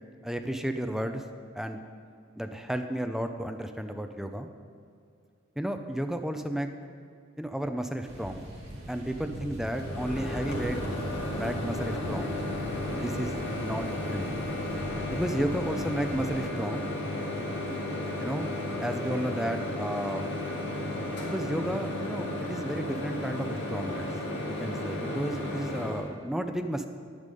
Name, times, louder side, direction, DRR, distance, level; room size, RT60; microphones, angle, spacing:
voice 1, 0.2-1.2 1.5-1.8 2.4-4.5 5.6-6.7 7.4-8.4 8.9-10.8 11.3-12.4 12.9-13.3 13.6-14.3 15.1-16.9 18.2-18.5 18.8-20.3 21.2-24.1 24.4-26.9, right 1 dB, ahead, 6 dB, 0.5 m, -32 dB
sound 1, 8.0-16.4, right 1 dB, 55° right, 2.6 m, -41 dB
Microwave oven, 9.7-26.0, left 1 dB, 55° left, 2.3 m, -33 dB
10.0 x 9.7 x 5.3 m, 2.3 s
head